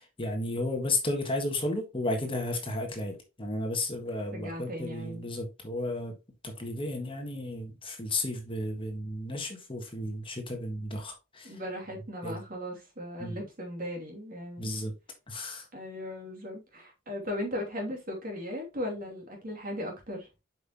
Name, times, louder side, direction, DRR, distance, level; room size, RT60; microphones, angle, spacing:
voice 1, 0.0-6.2 6.4-11.6 12.2-12.4 13.2-13.4 14.6-14.9 15.3-15.7, left 1 dB, 25° left, 1.6 m, -33 dB
voice 2, 4.3-5.2 11.4-14.8 15.7-20.3, left 1 dB, 45° right, 2.8 m, -37 dB
7.7 x 5.6 x 3.0 m
head